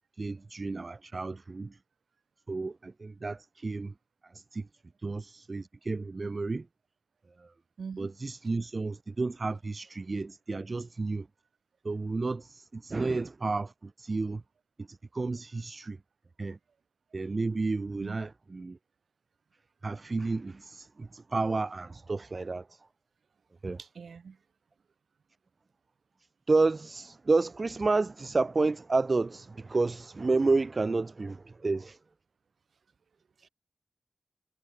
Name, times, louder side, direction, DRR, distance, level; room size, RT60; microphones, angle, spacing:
voice 1, 0.2-1.7 2.5-3.9 4.5-4.6 5.0-6.6 8.0-11.2 11.8-13.7 14.0-14.4 15.1-16.0 16.4-16.6 17.1-18.8 19.8-22.8 23.6-23.8 26.5-32.0, right 3 dB, 35° right, 7.5 m, -31 dB
voice 2, 7.8-8.1 18.0-18.2 23.8-24.4 33.4-33.5, right 5 dB, 75° right, 4.2 m, -42 dB
wide cardioid pair, 135°, 0 cm